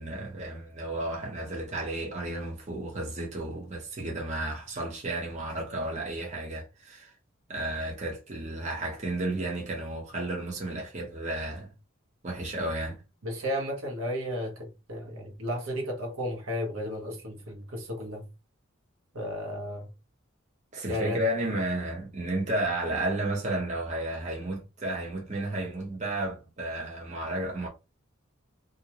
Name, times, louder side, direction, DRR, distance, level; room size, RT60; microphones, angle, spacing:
voice 1, 0.0-7.1 7.5-11.7 12.2-13.0 20.7-27.7, right 1 dB, 35° right, 0.8 m, -32 dB
voice 2, 13.2-18.3 19.1-19.9 20.9-21.2, equal, 85° right, 0.9 m, -33 dB
2.5 x 2.2 x 2.8 m
head